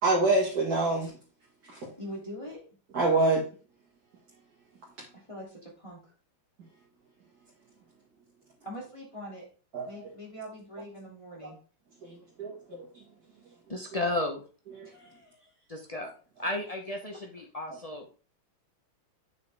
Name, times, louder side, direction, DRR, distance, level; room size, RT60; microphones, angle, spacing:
voice 1, 0.0-1.1 1.6-1.9 2.9-3.5 6.6-6.7 9.7-10.1 12.0-12.5 14.7-14.9 17.7-17.8, right 2 dB, 45° right, 2.4 m, -26 dB
voice 2, 2.0-2.6 5.3-6.1 8.6-9.5 9.8-11.6 14.8-15.6, equal, 15° left, 2.8 m, -43 dB
voice 3, 13.7-14.4 15.7-16.1 16.4-18.2, left 1 dB, 55° left, 0.4 m, -33 dB
8.3 x 6.6 x 3.5 m
omnidirectional pair, 2.4 m